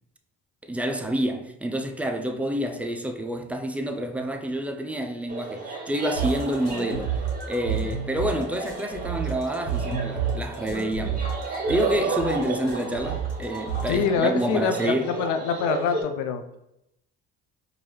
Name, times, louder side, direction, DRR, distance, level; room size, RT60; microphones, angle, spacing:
voice 1, 0.6-7.1 7.5-15.1, right 1 dB, 5° right, 0.4 m, -28 dB
sound 1, 5.3-16.0, right 4 dB, 25° right, 1.4 m, -33 dB
sound 2, 6.2-14.2, right 7 dB, 55° left, 1.1 m, -30 dB
voice 2, 13.9-16.4, left 6 dB, 80° left, 0.5 m, -25 dB
4.6 x 2.6 x 3.2 m
supercardioid pair, 85°, 31 cm